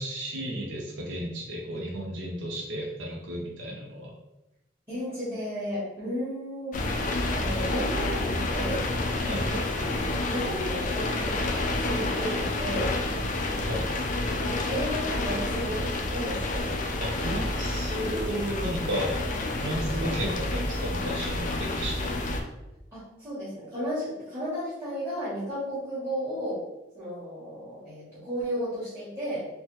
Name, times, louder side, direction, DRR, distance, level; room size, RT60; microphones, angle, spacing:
voice 1, 0.0-4.1 9.2-9.5 13.6-13.9 17.0-19.2 19.6-22.3, equal, 80° right, -2 dB, 0.6 m, -33 dB
voice 2, 4.9-6.8 7.3-8.9 9.2-10.0 10.3-13.0 14.3-16.7 22.9-26.6 26.9-29.5, equal, 15° right, -12 dB, 1.1 m, -34 dB
sound 1, 6.7-22.4, left 2 dB, 40° left, 0.3 m, -29 dB
3.2 x 2.1 x 3.0 m, 0.95 s
head